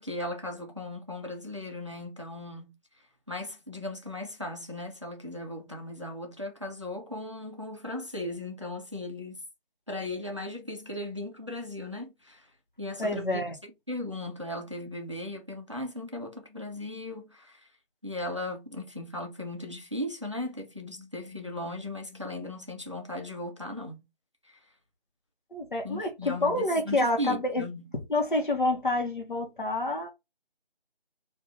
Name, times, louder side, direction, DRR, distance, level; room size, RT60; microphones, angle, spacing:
voice 1, 0.0-2.7 3.3-9.4 9.9-12.5 12.8-13.4 13.9-17.7 18.0-24.0 24.4-24.6 25.8-27.9, left 1 dB, 30° right, 0.5 m, -37 dB
voice 2, 13.0-13.6 25.5-27.6 28.1-30.1, left 2 dB, 55° left, 1.0 m, -28 dB
3.3 x 2.5 x 2.4 m
figure-of-eight pair, 170°, 30 cm